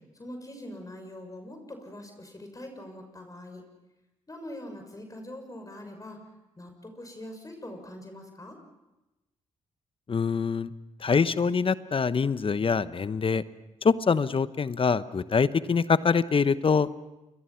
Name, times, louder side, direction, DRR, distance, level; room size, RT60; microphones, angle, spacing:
voice 1, 0.1-3.6 4.3-6.2 6.6-8.6, left 1 dB, 25° left, 4 dB, 6.4 m, -43 dB
voice 2, 10.1-10.7 11.0-13.4 13.8-17.0, left 5 dB, 40° left, 15 dB, 1.0 m, -24 dB
28.5 x 22.5 x 5.8 m, 1.0 s
hypercardioid pair, 45°, 14 cm